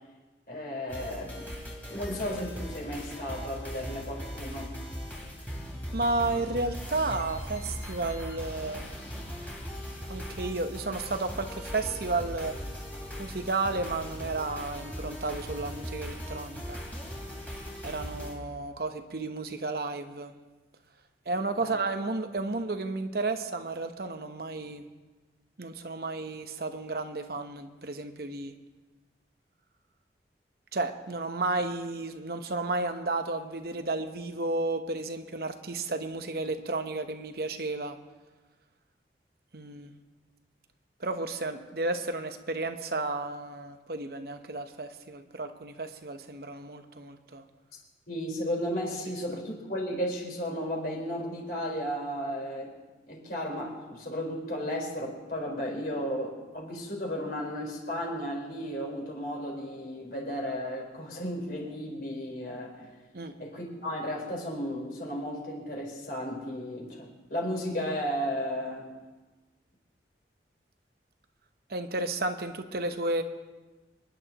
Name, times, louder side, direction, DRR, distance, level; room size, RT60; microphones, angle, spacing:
voice 1, 0.5-1.4 1.9-4.7 21.6-21.7 48.1-52.7 53.1-62.9 63.4-68.9, equal, 55° left, -2 dB, 4.4 m, -34 dB
sound 1, 0.9-18.3, equal, 10° left, 2.7 m, -39 dB
voice 2, 5.9-8.9 10.1-12.5 13.2-16.8 17.8-20.3 21.3-24.9 25.6-28.5 30.7-38.0 39.5-39.9 41.0-47.4 63.1-63.4 71.7-73.2, right 2 dB, 60° right, 7 dB, 0.9 m, -32 dB
28.0 x 10.5 x 3.0 m, 1.2 s
head